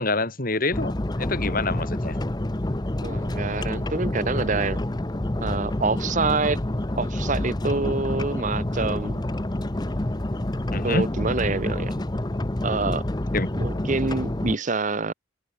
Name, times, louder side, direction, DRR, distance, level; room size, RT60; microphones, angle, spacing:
voice 1, 0.0-2.2 10.7-11.1 13.3-13.5, left 2 dB, 45° left, 3.3 m, -26 dB
sound 1, 0.7-14.6, left 1 dB, 20° left, 0.8 m, -28 dB
voice 2, 3.0-4.8 5.4-6.6 7.0-9.2 10.8-11.9 12.6-13.0 13.6-15.1, right 3 dB, 40° right, 0.9 m, -26 dB
open air
head